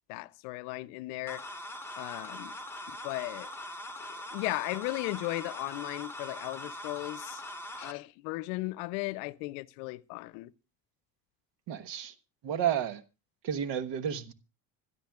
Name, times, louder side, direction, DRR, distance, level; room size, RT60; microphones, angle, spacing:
voice 1, 0.1-1.4 2.0-2.6 2.9-3.5 4.3-7.4 7.8-10.5, left 21 dB, 80° left, 0.7 m, -36 dB
sound 1, 1.3-7.9, left 1 dB, 5° left, 1.5 m, -42 dB
voice 2, 11.7-12.1 12.4-13.0 13.4-14.3, right 9 dB, 65° right, 1.3 m, -31 dB
26.0 x 12.5 x 2.3 m
supercardioid pair, 75°, 45 cm